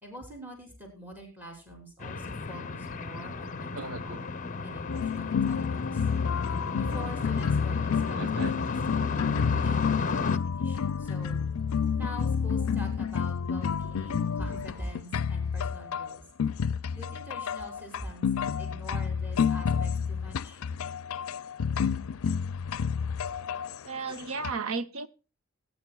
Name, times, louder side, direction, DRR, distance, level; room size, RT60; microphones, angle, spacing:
voice 1, 0.0-4.3 4.6-6.1 6.7-8.4 8.9-11.4 11.9-16.2 17.0-18.3 18.6-20.6, equal, 10° right, 3.4 m, -44 dB
sound 1, 2.0-10.4, left 4 dB, 35° left, 0.6 m, -33 dB
voice 2, 3.7-4.2 8.1-8.5 23.8-25.1, right 4 dB, 85° right, 0.9 m, -35 dB
sound 2, 4.9-24.5, left 6 dB, 75° left, 0.4 m, -30 dB
20.0 x 9.5 x 2.3 m
head